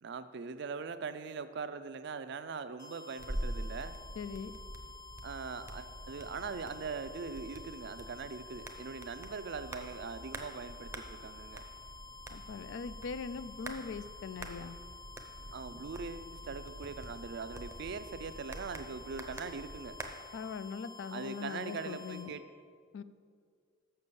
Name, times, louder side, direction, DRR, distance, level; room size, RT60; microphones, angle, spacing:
voice 1, 0.0-4.0 5.2-11.6 15.5-20.0 21.1-22.5, right 5 dB, 60° right, 12 dB, 0.4 m, -41 dB
sound 1, 2.8-22.3, left 4 dB, 50° left, 1.7 m, -51 dB
sound 2, 3.2-20.1, right 1 dB, 15° right, 0.6 m, -46 dB
voice 2, 4.2-4.6 12.3-14.8 20.3-22.3 22.9-23.0, left 5 dB, 65° left, 14 dB, 0.3 m, -41 dB
6.7 x 6.2 x 6.9 m, 2.1 s
head